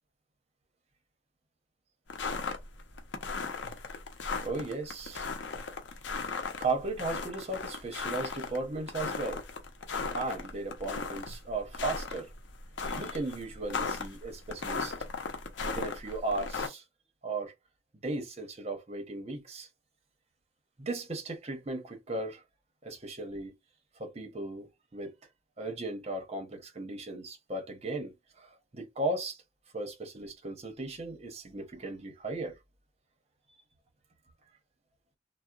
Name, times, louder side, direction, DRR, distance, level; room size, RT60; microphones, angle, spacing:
sound 1, 2.1-16.7, left 4 dB, 85° left, 0.6 m, -36 dB
voice 1, 4.4-5.3 6.6-9.4 10.1-12.3 12.8-15.0 15.6-16.8 17.2-17.5 18.0-19.7 20.8-22.4 22.8-23.5 24.0-24.7 24.9-25.1 25.6-29.4 29.7-32.6, right 2 dB, 35° right, 0.8 m, -36 dB
2.7 x 2.1 x 2.3 m
head